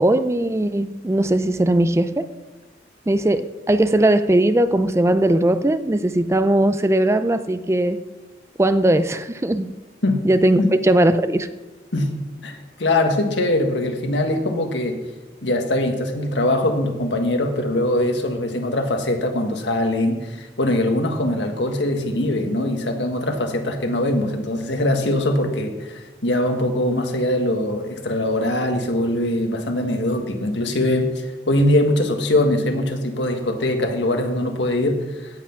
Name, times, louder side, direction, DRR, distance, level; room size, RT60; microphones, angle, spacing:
voice 1, 0.0-2.3 3.1-8.0 8.6-9.7 10.2-11.5, right 1 dB, 15° right, 12 dB, 0.4 m, -19 dB
voice 2, 12.4-15.0 15.4-35.3, left 1 dB, 85° left, 4 dB, 1.6 m, -22 dB
16.5 x 5.9 x 5.9 m, 1.2 s
head